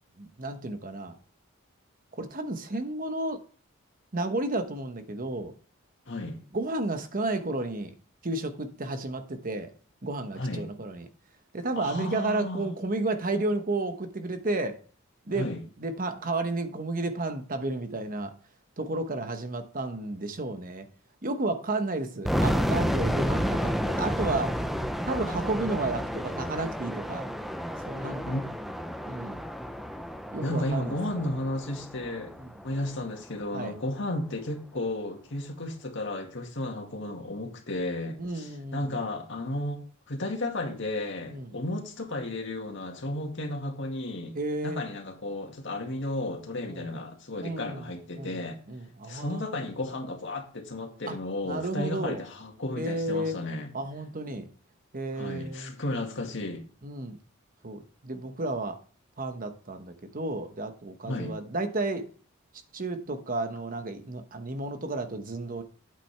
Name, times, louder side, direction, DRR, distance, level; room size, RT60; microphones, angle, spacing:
voice 1, 0.2-1.2 2.1-3.4 4.1-5.5 6.5-7.9 8.2-9.7 10.0-11.1 11.5-14.8 15.3-15.5 15.8-18.3 18.8-20.9 21.2-24.6 25.1-27.3 27.9-28.2 29.1-29.4 30.3-31.0 32.4-32.5 33.5-33.7 38.2-38.9 41.3-41.5 44.3-44.8 46.7-46.9 47.4-47.9 48.2-49.4 51.1-51.2 51.4-52.2 52.8-53.4 53.7-54.5 54.9-55.7 56.8-57.2 57.6-58.8 59.2-62.1 62.7-65.6, right 2 dB, 40° right, 1.0 m, -32 dB
voice 2, 6.1-6.4 10.3-10.7 11.8-12.7 15.3-15.6 28.3-28.5 30.4-32.3 32.6-44.3 44.6-48.6 49.0-53.7 55.1-56.6 61.1-61.3, left 1 dB, 60° left, 2.0 m, -33 dB
sound 1, 22.2-33.1, equal, ahead, 0.5 m, -31 dB
8.8 x 8.5 x 3.4 m
head